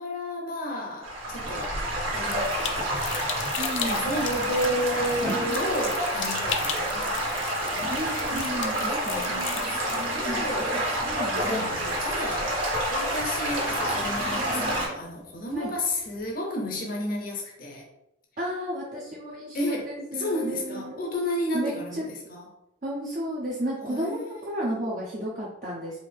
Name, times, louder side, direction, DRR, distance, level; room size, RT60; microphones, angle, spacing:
voice 1, 0.0-1.8 2.1-2.9 3.8-8.0 8.3-11.1 11.4-17.8 19.5-22.5 23.8-24.3, left 1 dB, 45° left, -1 dB, 0.7 m, -32 dB
Stream / Gurgling / Trickle dribble, 1.0-14.9, right 1 dB, 85° right, 1.6 m, -28 dB
sound 1, 2.3-10.1, left 8 dB, 75° left, 0.5 m, -37 dB
voice 2, 3.6-4.1 7.9-9.8 11.1-11.4 15.5-15.7 18.4-21.1 21.5-22.0 22.8-26.0, equal, 40° right, -5 dB, 0.7 m, -33 dB
sound 2, 4.0-6.2 6.6-9.5 9.8-12.8 13.1-13.2 13.6-15.1 15.5-16.2, equal, 5° left, 0.7 m, -38 dB
4.8 x 2.7 x 3.4 m, 0.88 s
head